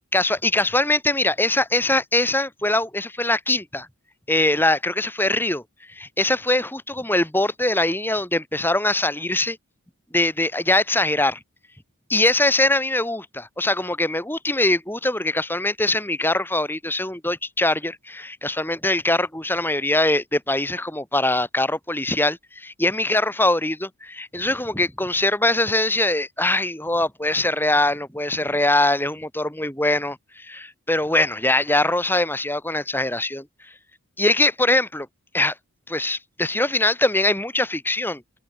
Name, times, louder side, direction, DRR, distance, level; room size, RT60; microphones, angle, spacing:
voice 1, 0.1-3.9 4.3-5.6 5.9-9.6 10.1-11.4 12.1-33.5 34.2-35.1 35.3-35.5 35.9-38.2, left 2 dB, 10° left, 4.1 m, -22 dB
open air
head